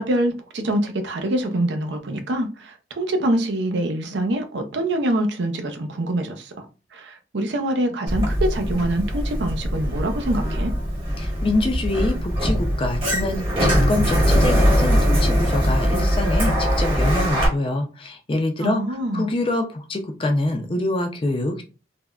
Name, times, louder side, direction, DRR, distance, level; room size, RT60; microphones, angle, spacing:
voice 1, 0.0-6.7 6.9-10.7 18.6-19.3, right 1 dB, 75° right, 0.5 m, -25 dB
Sliding door, 8.1-17.5, equal, 30° right, 1.0 m, -21 dB
voice 2, 11.2-18.8 19.1-21.6, left 2 dB, 30° left, 0.4 m, -25 dB
3.3 x 2.1 x 2.3 m
head